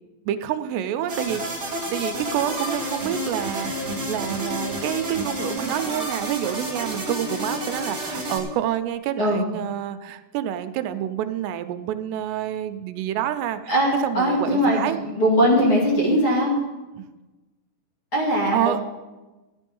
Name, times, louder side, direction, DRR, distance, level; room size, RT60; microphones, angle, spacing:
voice 1, 0.3-13.7 14.0-15.0 17.0-17.1 18.5-18.8, right 11 dB, 85° right, 10 dB, 2.7 m, -28 dB
sound 1, 1.1-8.4, equal, 20° right, 2.3 m, -30 dB
voice 2, 9.2-9.5 13.7-16.6 18.1-18.8, equal, 35° left, -4 dB, 2.6 m, -20 dB
13.0 x 10.5 x 5.4 m, 1.2 s
omnidirectional pair, 4.9 m